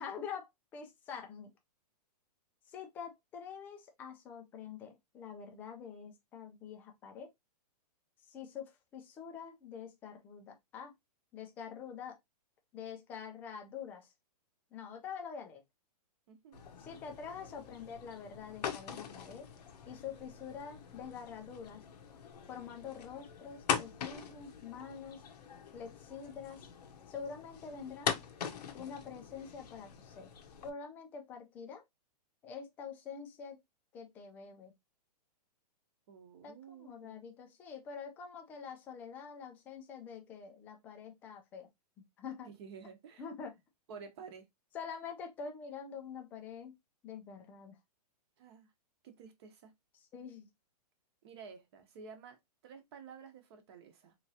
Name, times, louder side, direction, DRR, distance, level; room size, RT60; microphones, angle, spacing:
voice 1, 0.0-1.5 2.7-7.3 8.3-10.9 11.3-12.2 12.7-14.1 14.7-15.6 16.8-19.5 19.9-21.8 22.5-25.2 25.7-26.7 27.1-28.2 28.7-30.3 30.6-31.8 32.4-33.6 33.9-34.7 36.4-41.7 42.2-42.5 43.2-43.5 44.7-46.8 47.0-47.8 50.1-50.5, left 6 dB, 10° left, 0.3 m, -46 dB
voice 2, 16.3-16.7 36.1-37.3 42.4-43.3 43.9-44.5 48.4-48.7 49.0-49.7 51.2-54.2, right 6 dB, 40° right, 0.9 m, -52 dB
sound 1, 16.5-30.7, left 7 dB, 75° left, 0.8 m, -42 dB
3.6 x 3.1 x 2.7 m
hypercardioid pair, 165°, 21 cm